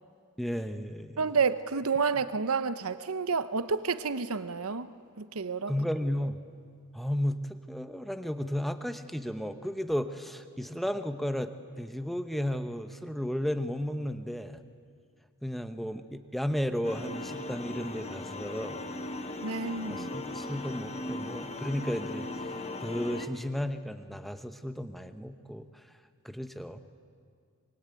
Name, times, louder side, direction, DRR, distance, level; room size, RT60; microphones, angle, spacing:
voice 1, 0.4-1.2 5.7-6.4 6.9-14.6 15.4-18.8 19.9-22.5 22.8-25.9 26.2-26.8, equal, ahead, 9 dB, 1.0 m, -34 dB
voice 2, 1.2-4.9 5.2-5.7 19.4-20.1, right 5 dB, 85° right, 13 dB, 0.8 m, -29 dB
sound 1, 16.8-23.3, left 2 dB, 30° left, 1.2 m, -38 dB
25.0 x 23.5 x 9.2 m, 2.1 s
head